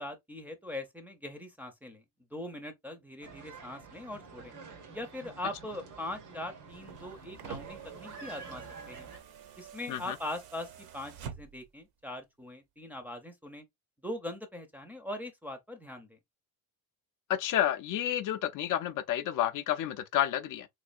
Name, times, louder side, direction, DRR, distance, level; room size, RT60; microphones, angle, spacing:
voice 1, 0.0-2.0 2.3-4.5 4.9-9.1 9.6-13.6 14.0-16.2, left 1 dB, 5° right, 0.5 m, -41 dB
sound 1, 3.2-9.2, right 4 dB, 90° right, 1.4 m, -49 dB
sound 2, 6.7-11.8 13.0-13.1, right 8 dB, 70° right, 0.9 m, -47 dB
voice 2, 17.3-20.7, left 11 dB, 55° left, 0.5 m, -30 dB
3.5 x 3.2 x 2.5 m
cardioid pair, 145°, 39 cm